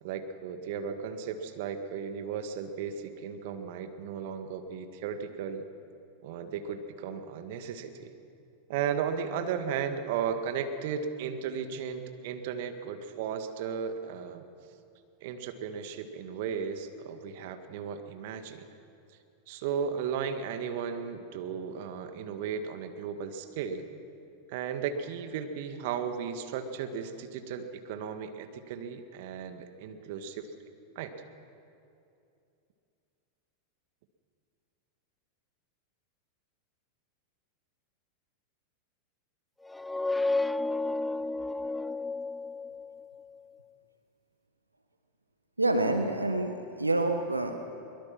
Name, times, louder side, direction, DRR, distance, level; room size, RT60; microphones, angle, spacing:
voice 1, 0.0-5.7 6.2-8.1 8.7-14.4 15.2-18.6 19.5-23.8 24.5-30.5 31.0-31.1, right 7 dB, 55° right, 8 dB, 1.8 m, -35 dB
sound 1, 39.7-43.2, left 2 dB, 5° left, 0.5 m, -32 dB
voice 2, 45.6-47.6, right 2 dB, 90° right, 6 dB, 1.4 m, -27 dB
23.0 x 23.0 x 6.0 m, 2.6 s
figure-of-eight pair, 90°, 0 cm